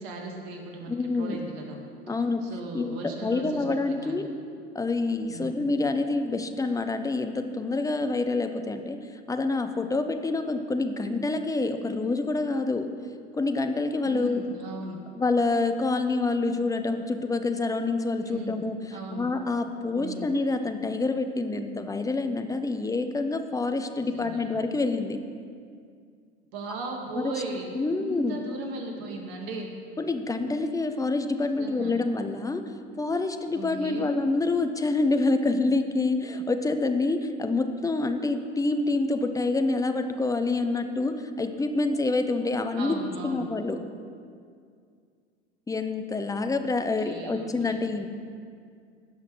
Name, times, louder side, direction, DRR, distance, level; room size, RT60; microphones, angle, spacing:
voice 1, 0.0-1.8 2.1-4.3 5.3-5.6 14.0-15.0 18.2-18.6 18.9-19.3 19.9-20.3 24.1-24.5 26.5-29.7 31.6-32.0 33.5-34.1 42.8-43.5 47.0-47.8, right 2 dB, 60° right, 2 dB, 1.9 m, -37 dB
voice 2, 0.9-1.4 2.1-2.4 2.7-4.3 4.7-9.0 9.3-12.9 13.4-14.4 15.2-18.8 19.1-25.2 27.1-27.3 27.7-28.4 30.0-32.6 33.0-43.0 43.2-43.8 45.7-48.1, left 3 dB, 10° left, 7 dB, 0.7 m, -27 dB
16.5 x 5.9 x 4.6 m, 2.2 s
figure-of-eight pair, 75°, 34 cm